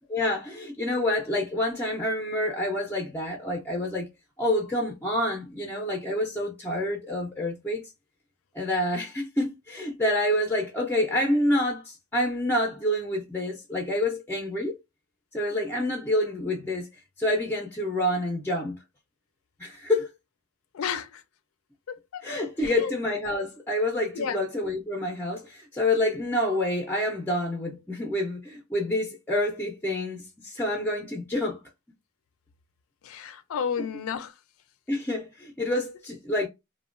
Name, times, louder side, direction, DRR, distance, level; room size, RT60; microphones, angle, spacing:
voice 1, 0.1-4.1 4.4-7.8 8.5-14.8 15.3-16.9 17.2-18.7 19.6-20.1 22.2-31.6 33.7-33.8 34.9-36.5, left 1 dB, 10° left, 0.5 m, -28 dB
voice 2, 20.7-21.1 21.9-22.2 22.6-22.9 24.2-24.4 33.0-34.3, left 7 dB, 75° left, 0.4 m, -31 dB
2.9 x 2.1 x 2.4 m
head